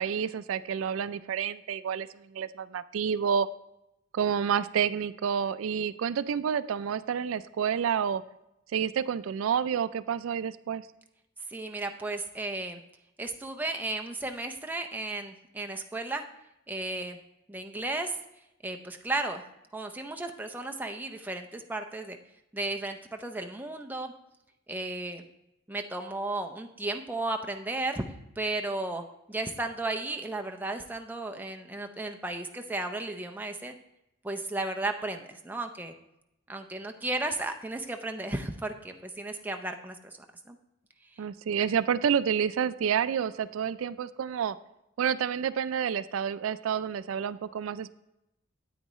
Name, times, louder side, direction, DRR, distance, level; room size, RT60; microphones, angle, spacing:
voice 1, 0.0-3.5 4.1-8.2 8.7-10.8 41.2-44.6 45.0-47.9, right 7 dB, 85° right, 15 dB, 0.3 m, -29 dB
voice 2, 11.5-12.8 13.2-16.2 16.7-17.2 17.5-18.2 18.6-19.4 19.7-22.2 22.5-24.1 24.7-25.2 25.7-28.0 28.4-33.7 34.2-35.9 36.5-40.2 40.5-40.6 41.1-41.2, right 2 dB, 10° right, 4 dB, 0.5 m, -34 dB
9.0 x 8.7 x 3.1 m, 0.87 s
head